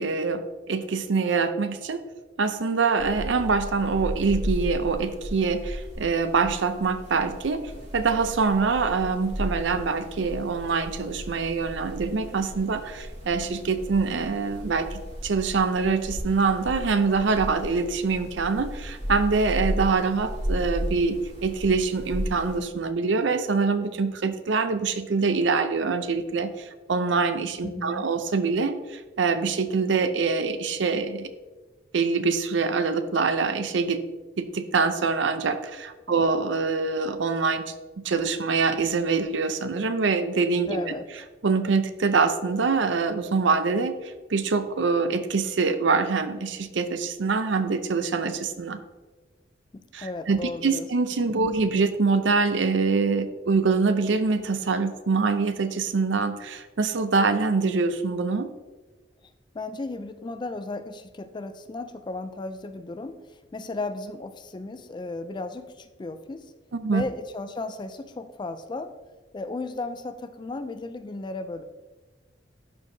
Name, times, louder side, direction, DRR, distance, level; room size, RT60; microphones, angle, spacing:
voice 1, 0.0-2.0 2.4-31.3 31.9-34.0 34.4-37.7 38.0-40.9 41.4-48.8 49.9-58.5 66.7-67.0, right 4 dB, 75° right, 10 dB, 0.5 m, -25 dB
sound 1, 3.0-22.6, equal, 40° right, 2.1 m, -35 dB
voice 2, 27.6-28.1 36.1-36.2 40.7-41.1 49.7-50.9 59.5-66.5 66.9-68.9 69.3-71.6, left 2 dB, 25° left, 10 dB, 0.3 m, -35 dB
11.5 x 4.6 x 2.7 m, 1.2 s
head